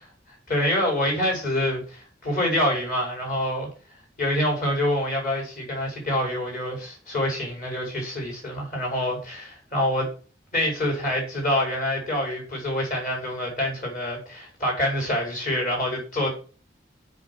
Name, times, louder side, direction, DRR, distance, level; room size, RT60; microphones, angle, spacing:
voice 1, 0.5-3.7 4.2-10.1 10.5-16.3, left 1 dB, 50° left, 4.9 m, -26 dB
7.3 x 5.4 x 7.0 m
head